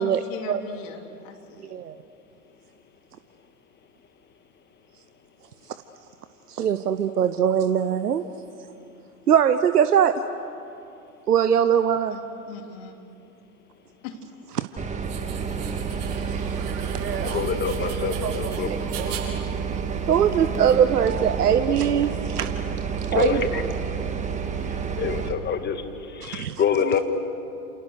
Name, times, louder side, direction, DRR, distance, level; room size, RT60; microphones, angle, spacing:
voice 1, 0.0-1.7 12.1-12.9 14.0-14.2, left 4 dB, 55° left, 4 dB, 3.3 m, -39 dB
voice 2, 6.5-8.2 9.3-10.2 11.3-12.2 14.6-14.7 16.3-17.5 17.8-19.4 20.1-22.5 23.1-23.4 26.2-26.6, right 8 dB, 85° right, 10 dB, 1.0 m, -22 dB
sound 1, 14.8-25.3, right 6 dB, 15° right, 2.1 m, -29 dB
sound 2, 15.0-20.7, right 7 dB, 45° right, 8.0 m, -42 dB
sound 3, 16.1-21.4, right 8 dB, 65° right, 2.9 m, -43 dB
voice 3, 17.2-18.7 23.1-23.6 24.6-27.0, left 7 dB, 20° left, 8 dB, 1.9 m, -26 dB
29.0 x 27.5 x 6.6 m, 2.8 s
hypercardioid pair, 105°, 45 cm